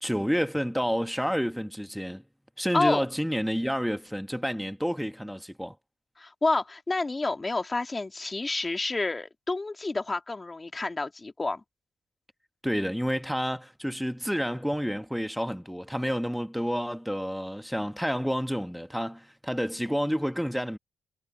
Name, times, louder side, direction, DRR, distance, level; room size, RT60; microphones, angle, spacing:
voice 1, 0.0-2.2 2.6-5.7 12.6-20.8, equal, ahead, 1.2 m, -29 dB
voice 2, 2.7-3.1 6.2-11.6, left 3 dB, 25° left, 2.4 m, -29 dB
cardioid pair, 80°, 0 cm